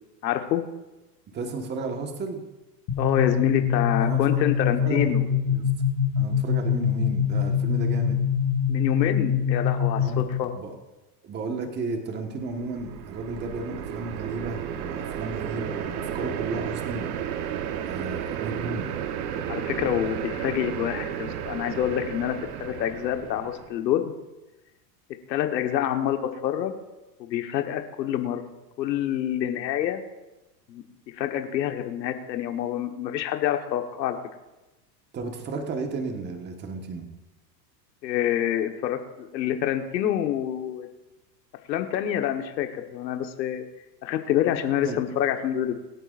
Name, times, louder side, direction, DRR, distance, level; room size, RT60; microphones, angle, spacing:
voice 1, 0.2-0.6 3.0-5.2 8.7-10.5 19.5-24.1 25.3-26.7 27.2-28.4 28.8-30.0 30.7-30.8 31.2-34.2 38.0-40.9 41.7-43.6 44.0-45.7, left 11 dB, 85° left, 5 dB, 1.5 m, -27 dB
voice 2, 1.3-2.4 3.6-5.6 6.2-8.2 10.0-10.2 10.5-10.7 11.2-17.1 17.8-18.9 35.1-37.1 44.8-45.0, right 3 dB, 20° right, 3 dB, 1.5 m, -33 dB
sound 1, 2.9-10.4, left 8 dB, 35° left, 1.8 m, -24 dB
sound 2, 12.4-23.8, right 9 dB, 60° right, 1.3 m, -33 dB
25.5 x 9.2 x 2.6 m, 1.0 s
supercardioid pair, 150°, 50 cm